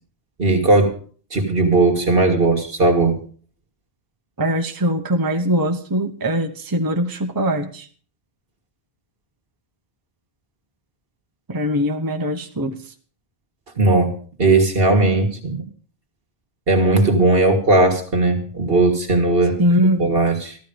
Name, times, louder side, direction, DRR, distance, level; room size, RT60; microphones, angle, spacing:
voice 1, 0.4-1.0 1.3-3.2 13.8-14.1 14.4-15.7 16.7-19.6 20.0-20.6, right 2 dB, 65° right, 4 dB, 1.9 m, -17 dB
voice 2, 4.4-7.9 11.5-12.8 19.6-20.1, equal, 20° right, 4 dB, 0.9 m, -21 dB
14.0 x 12.5 x 5.1 m, 0.42 s
omnidirectional pair, 1.0 m